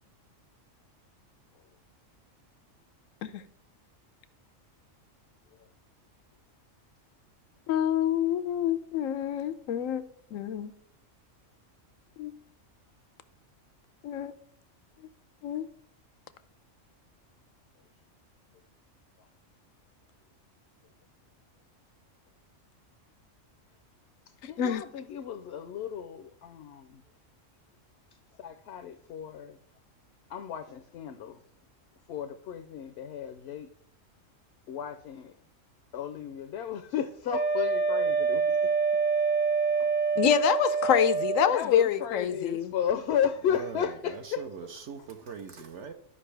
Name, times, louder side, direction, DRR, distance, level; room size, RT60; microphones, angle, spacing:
voice 1, 7.7-10.0 10.3-10.7 12.2-12.3 14.0-14.3 15.4-15.7 24.4-24.8 40.2-42.7, left 9 dB, 85° left, 1.0 m, -27 dB
voice 2, 24.4-27.0 28.4-29.6 30.3-31.4 32.1-33.7 34.7-35.3 35.9-38.6 39.8-39.9 41.5-44.5, left 8 dB, 65° left, 0.7 m, -34 dB
Wind instrument woodwind instrument, 37.3-41.6, right 5 dB, 50° right, 0.6 m, -26 dB
voice 3, 43.5-45.9, right 6 dB, 65° right, 1.0 m, -41 dB
12.5 x 5.3 x 3.3 m
omnidirectional pair, 1.3 m